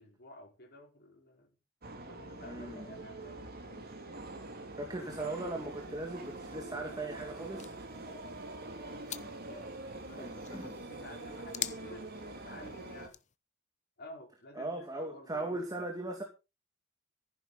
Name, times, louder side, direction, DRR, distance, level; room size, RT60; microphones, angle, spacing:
voice 1, 0.0-1.5 2.1-4.0 8.2-8.3 9.3-13.2 14.0-15.9, left 1 dB, 50° left, 5.4 m, -52 dB
sound 1, 1.8-13.1, right 2 dB, 50° right, 3.3 m, -45 dB
voice 2, 2.4-2.8 4.8-7.8 10.2-10.7 14.5-16.2, right 2 dB, 20° right, 2.5 m, -38 dB
sound 2, 5.6-13.4, left 10 dB, 35° left, 0.8 m, -47 dB
14.0 x 11.0 x 4.3 m
head